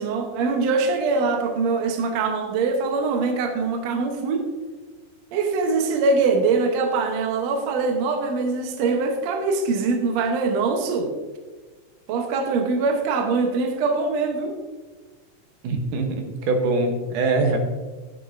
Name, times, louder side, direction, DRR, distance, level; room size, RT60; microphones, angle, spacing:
voice 1, 0.0-4.5 5.3-11.1 12.1-14.6, right 4 dB, 65° right, 3 dB, 2.1 m, -23 dB
voice 2, 15.6-17.6, right 3 dB, 85° right, 4 dB, 2.7 m, -23 dB
11.5 x 9.9 x 2.6 m, 1.3 s
omnidirectional pair, 3.6 m